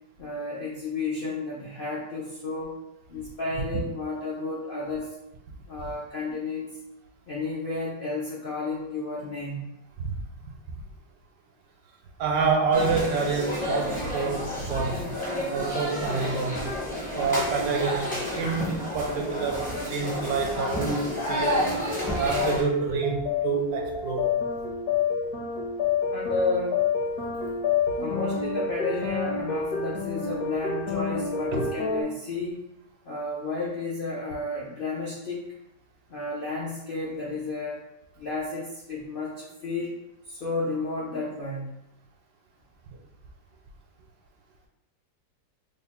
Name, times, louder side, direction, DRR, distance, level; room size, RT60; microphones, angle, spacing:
voice 1, 0.2-2.8 3.1-5.1 5.7-6.8 7.3-9.6 26.1-26.9 28.0-32.7 33.0-35.5 36.1-37.8 38.2-40.0 40.3-41.7, left 3 dB, 85° left, -5 dB, 0.5 m, -32 dB
voice 2, 12.2-15.1 15.5-16.7 17.1-21.7 22.2-24.4 31.5-31.7, right 5 dB, 75° right, 2 dB, 1.2 m, -27 dB
sound 1, 12.7-22.6, equal, 10° left, 0.4 m, -31 dB
sound 2, 21.0-32.0, left 5 dB, 65° left, 1.1 m, -29 dB
3.4 x 2.1 x 4.2 m, 0.86 s
omnidirectional pair, 1.9 m